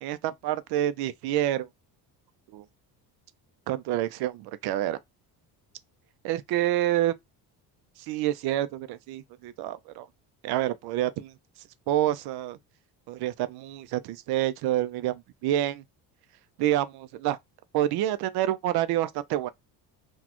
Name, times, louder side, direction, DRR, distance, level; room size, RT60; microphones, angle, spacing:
voice 1, 0.0-1.7 2.5-2.6 3.7-5.0 6.2-7.1 8.1-10.1 10.4-11.3 11.9-12.6 13.1-15.8 16.6-17.4 17.7-19.5, right 13 dB, 70° right, 0.5 m, -28 dB
4.0 x 2.3 x 2.9 m
cardioid pair, 105°, 40 cm